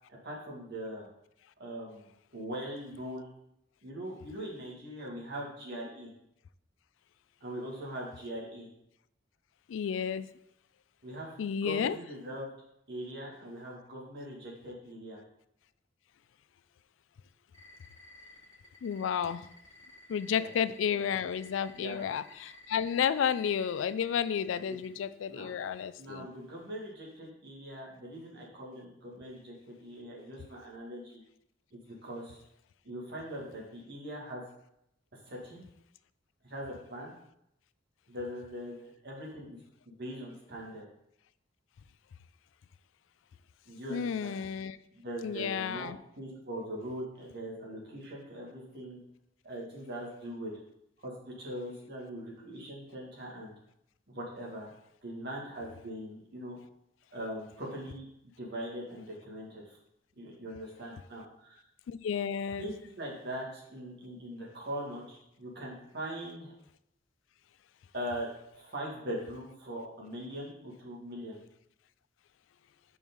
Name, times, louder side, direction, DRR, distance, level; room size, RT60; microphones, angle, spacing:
voice 1, 0.2-1.1 1.6-2.1 2.3-3.3 3.8-6.1 7.4-8.7 11.0-12.5 12.9-15.2 20.3-20.5 21.8-22.0 24.7-24.8 25.3-25.5 26.0-31.2 31.7-32.4 32.8-34.4 35.3-35.6 36.4-37.1 38.1-39.6 39.9-40.8 43.7-44.4 44.9-45.9 46.2-49.0 49.4-50.5 51.0-53.5 54.1-54.7 55.0-56.6 57.1-58.1 58.4-59.8 60.2-61.6 62.6-66.5 67.9-68.3 68.5-71.4, right 1 dB, 60° right, -3 dB, 2.2 m, -41 dB
voice 2, 9.7-10.3 11.4-12.0 18.8-19.5 20.1-26.3 43.9-44.8 45.2-46.0 61.9-62.7, left 7 dB, 80° left, 15 dB, 0.3 m, -32 dB
sound 1, 17.5-24.9, left 1 dB, 20° left, 2.7 m, -54 dB
5.4 x 4.7 x 5.4 m, 0.79 s
head